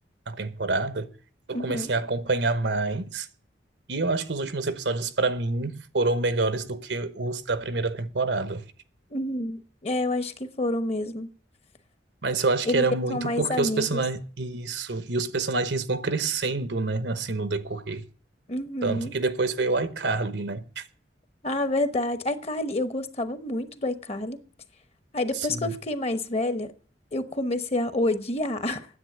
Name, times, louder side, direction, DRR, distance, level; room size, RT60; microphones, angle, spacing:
voice 1, 0.3-1.2 1.5-3.3 3.9-8.6 12.2-18.1 18.8-20.8 25.3-25.8, right 3 dB, 80° right, 1.0 m, -27 dB
voice 2, 1.5-1.9 9.1-11.3 12.7-12.8 13.1-14.0 18.5-19.1 21.4-24.4 25.1-26.7 27.1-28.9, left 1 dB, 35° left, 1.0 m, -28 dB
9.9 x 7.9 x 9.0 m
head